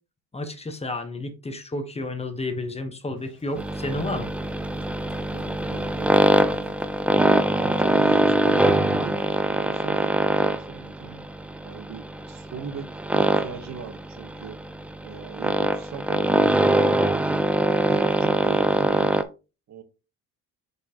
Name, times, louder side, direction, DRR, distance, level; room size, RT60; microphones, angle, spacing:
voice 1, 0.3-4.3, left 2 dB, 15° left, 1.1 m, -31 dB
Thunder / Rain, 3.2-9.5, left 1 dB, 35° left, 3.1 m, -44 dB
sound 1, 3.6-19.2, right 1 dB, 5° right, 0.4 m, -23 dB
voice 2, 5.3-6.7 7.1-9.2 9.4-11.3 11.6-14.6 15.0-16.5 17.6-19.2 19.7-19.8, right 6 dB, 50° right, 1.1 m, -39 dB
6.2 x 5.4 x 2.9 m
cardioid pair, 115°, 36 cm